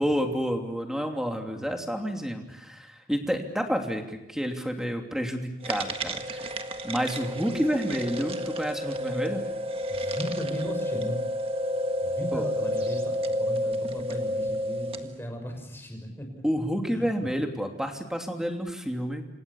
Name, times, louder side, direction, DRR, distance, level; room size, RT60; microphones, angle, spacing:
voice 1, 0.0-6.4 6.8-9.4 12.3-12.5 16.4-19.3, equal, 5° right, 4 dB, 2.9 m, -29 dB
sound 1, 5.6-15.2, equal, 30° right, 1.6 m, -30 dB
voice 2, 9.9-11.2 12.0-16.3 16.9-17.3, equal, 10° left, 3 dB, 6.2 m, -37 dB
28.5 x 26.5 x 7.2 m, 0.90 s
head